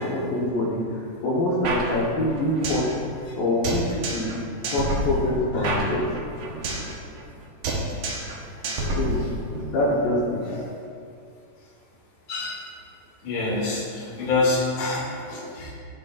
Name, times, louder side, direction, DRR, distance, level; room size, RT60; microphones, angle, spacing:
voice 1, 0.0-2.8 3.3-3.9 4.1-4.3 4.7-6.0 9.0-9.2 9.7-10.4, left 1 dB, 65° left, -6 dB, 2.5 m, -24 dB
sound 1, 1.6-2.9 3.2-3.3 3.6-4.4 4.6-6.9 7.2-7.4 7.6-8.4 8.6-9.6, right 2 dB, 85° right, 1.6 m, -28 dB
voice 2, 8.7-9.3 10.4-10.6 12.3-12.6 13.2-15.7, left 3 dB, 50° left, -5 dB, 3.3 m, -27 dB
17.5 x 7.5 x 2.6 m, 2.4 s
omnidirectional pair, 5.2 m